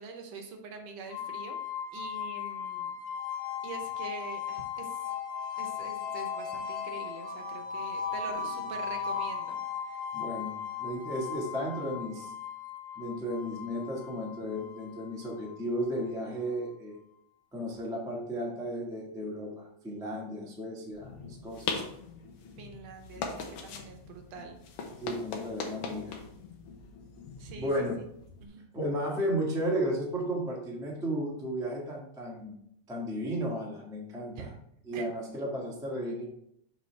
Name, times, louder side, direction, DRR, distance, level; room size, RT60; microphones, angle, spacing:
voice 1, 0.0-1.6 1.9-2.9 3.6-5.0 5.6-9.6 9.8-10.0 22.6-24.6 27.4-27.7 28.4-28.6 34.3-34.5 34.9-35.1, right 4 dB, 70° right, 4 dB, 1.9 m, -44 dB
sound 1, 1.1-16.0, left 7 dB, 40° left, 1.6 m, -37 dB
voice 2, 10.1-12.3 13.0-17.0 17.5-21.1 21.4-21.8 25.0-26.2 27.5-27.9 28.7-32.6 32.9-34.5 34.9-36.2, equal, 5° right, -3 dB, 0.4 m, -34 dB
sound 2, 20.9-28.5, left 5 dB, 65° left, 1.6 m, -41 dB
6.7 x 5.7 x 3.4 m, 0.72 s
omnidirectional pair, 3.3 m